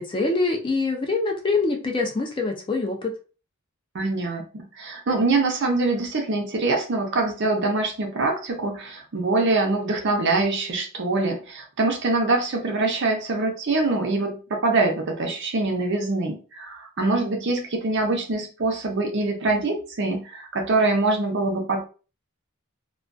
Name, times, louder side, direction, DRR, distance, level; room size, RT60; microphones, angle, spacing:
voice 1, 0.0-3.1, left 3 dB, 20° left, 2 dB, 0.4 m, -24 dB
voice 2, 3.9-21.8, right 3 dB, 55° right, 3 dB, 0.6 m, -24 dB
2.3 x 2.2 x 2.4 m, 0.35 s
head